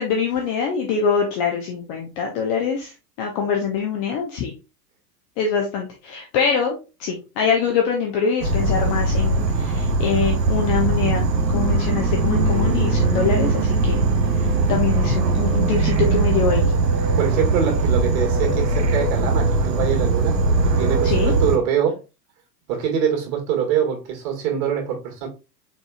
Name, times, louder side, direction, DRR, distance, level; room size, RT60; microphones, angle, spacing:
voice 1, 0.0-4.5 5.4-11.3 11.5-14.0 14.4-16.6 21.0-21.3, left 6 dB, 20° left, 0.3 m, -24 dB
Insect / Frog, 8.4-21.6, right 3 dB, 90° right, 1.1 m, -20 dB
voice 2, 17.2-22.0 22.7-25.3, right 8 dB, 55° right, 2.0 m, -24 dB
4.4 x 4.1 x 2.3 m
hypercardioid pair, 105°, 50 cm